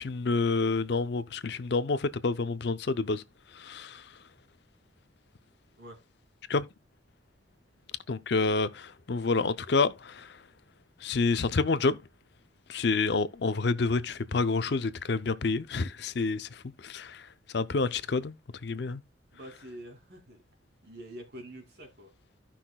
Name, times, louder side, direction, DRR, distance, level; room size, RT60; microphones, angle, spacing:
voice 1, 0.0-3.2 3.5-4.1 6.5-6.6 8.1-10.4 11.0-12.0 12.7-17.3 17.5-18.4 18.6-19.0, left 4 dB, 60° left, 0.5 m, -28 dB
voice 2, 19.3-20.4 20.8-22.1, right 1 dB, 55° right, 2.6 m, -46 dB
15.5 x 5.8 x 2.2 m
head